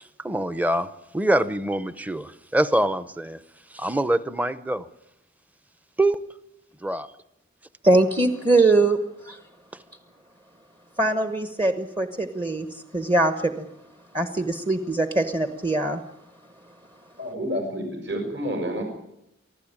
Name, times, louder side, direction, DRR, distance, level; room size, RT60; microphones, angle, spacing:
voice 1, 0.2-0.9 1.1-3.4 3.7-4.9 6.0-6.2 6.8-7.1, right 1 dB, 10° right, 13 dB, 0.7 m, -24 dB
voice 2, 7.8-9.0 9.2-9.4 11.0-13.7 14.1-16.0, right 2 dB, 25° right, 7 dB, 1.1 m, -22 dB
voice 3, 17.2-18.8, equal, 60° right, 3 dB, 6.1 m, -29 dB
24.5 x 15.5 x 8.8 m, 0.81 s
head